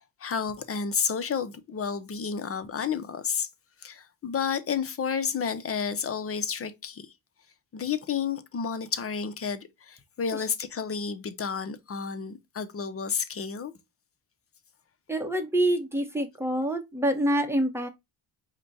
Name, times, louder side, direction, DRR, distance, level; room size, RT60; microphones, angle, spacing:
voice 1, 0.2-3.5 3.8-7.1 7.7-13.7, left 6 dB, 30° left, 0.6 m, -31 dB
voice 2, 15.1-17.9, right 1 dB, 5° right, 0.8 m, -26 dB
5.0 x 2.2 x 3.9 m
cardioid pair, 110°, 49 cm